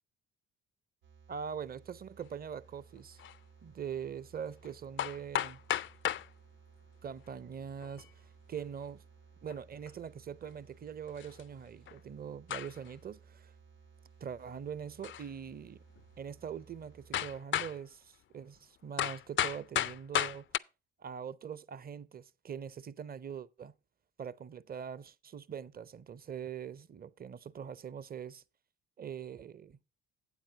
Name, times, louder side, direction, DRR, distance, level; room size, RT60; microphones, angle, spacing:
sound 1, 1.0-17.4, right 6 dB, 85° right, 2.6 m, -60 dB
voice 1, 1.3-3.2 3.6-5.6 7.0-8.1 8.5-9.0 9.4-13.5 14.2-15.8 16.2-20.5 21.0-23.7 24.2-28.4 29.0-29.8, right 7 dB, 25° right, 0.6 m, -43 dB
sound 2, 3.2-3.4 4.6-4.7 5.0-6.3 7.6-8.1 9.5-9.6 9.9-10.0 11.2-11.4 11.9-12.0 12.5-12.9 15.0-15.3 16.0-16.1 17.1-17.8 19.0-20.6, left 11 dB, 35° left, 0.4 m, -34 dB
12.0 x 8.8 x 2.8 m
hypercardioid pair, 50°, 38 cm